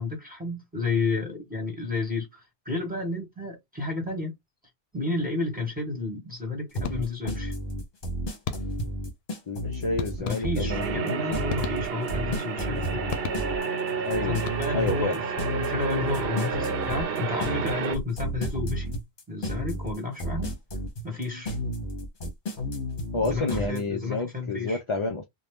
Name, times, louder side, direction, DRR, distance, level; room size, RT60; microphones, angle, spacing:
voice 1, 0.0-4.3 4.9-7.5 10.2-13.1 14.2-15.3 15.6-18.9 19.3-20.5 21.0-21.5 23.2-24.8, left 3 dB, 10° right, 1.5 m, -31 dB
sound 1, 6.7-23.8, equal, 55° left, 1.1 m, -32 dB
sound 2, 6.8-7.4 8.4-9.0 10.0-10.8 11.5-12.3 13.1-13.8 14.3-15.0, left 6 dB, 80° left, 0.8 m, -36 dB
voice 2, 9.5-11.4 14.1-14.4 14.7-15.2 23.1-25.2, left 3 dB, 40° left, 0.5 m, -29 dB
sound 3, 10.7-18.0, right 6 dB, 70° right, 0.8 m, -30 dB
2.7 x 2.2 x 3.4 m
omnidirectional pair, 1.0 m